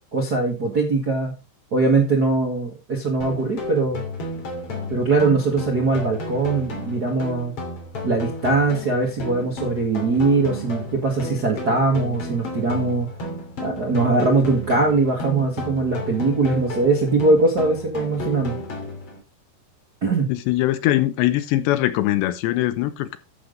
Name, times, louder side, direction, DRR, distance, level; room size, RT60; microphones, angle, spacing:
voice 1, 0.1-1.3 1.7-4.0 4.9-7.5 8.0-13.1 13.6-18.6 20.0-20.3, right 3 dB, 45° right, 1.2 m, -21 dB
sound 1, 3.2-19.2, left 2 dB, 35° left, 3.1 m, -32 dB
voice 2, 20.3-23.2, left 15 dB, 80° left, 3.0 m, -21 dB
12.0 x 7.6 x 4.0 m
omnidirectional pair, 5.1 m